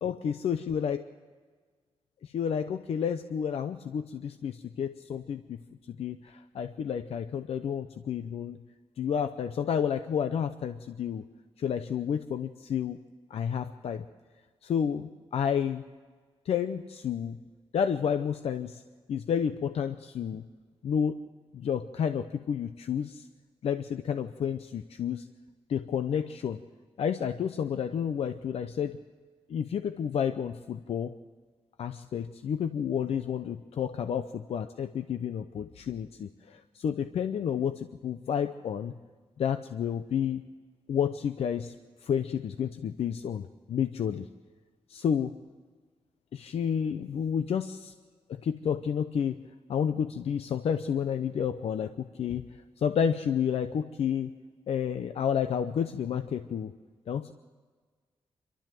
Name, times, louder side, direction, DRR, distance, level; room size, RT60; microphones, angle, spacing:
voice 1, 0.0-1.0 2.2-5.4 5.9-8.6 9.0-11.2 11.6-13.0 13.3-14.0 14.6-15.8 16.5-17.4 17.7-18.8 19.1-20.4 20.8-21.1 21.5-23.3 23.6-25.3 25.7-26.6 27.0-29.0 29.5-31.2 31.8-38.9 39.4-40.4 40.9-41.7 42.0-44.3 44.9-45.4 46.3-47.9 48.3-49.4 49.7-52.5 52.8-54.3 54.7-56.7 57.1-57.3, left 8 dB, 75° left, 9 dB, 0.7 m, -30 dB
27.0 x 12.5 x 7.6 m, 1.5 s
wide cardioid pair, 160°, 10 cm